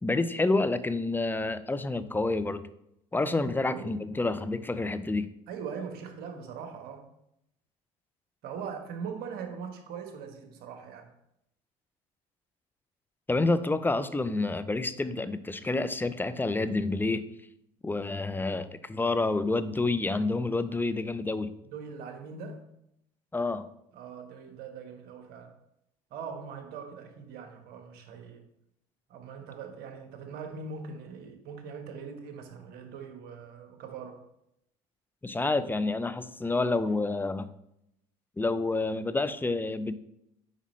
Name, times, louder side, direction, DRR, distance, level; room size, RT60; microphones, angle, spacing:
voice 1, 0.0-2.7 3.1-5.3 13.3-17.2 17.8-21.5 23.3-23.7 35.2-37.5 38.4-39.9, left 3 dB, 10° left, 12 dB, 0.5 m, -28 dB
voice 2, 3.2-4.0 5.5-7.1 8.4-11.1 21.7-22.6 23.9-25.5 26.1-28.4 29.1-34.2, right 6 dB, 60° right, 5 dB, 1.3 m, -41 dB
8.3 x 5.0 x 3.2 m, 0.79 s
hypercardioid pair, 75°, 18 cm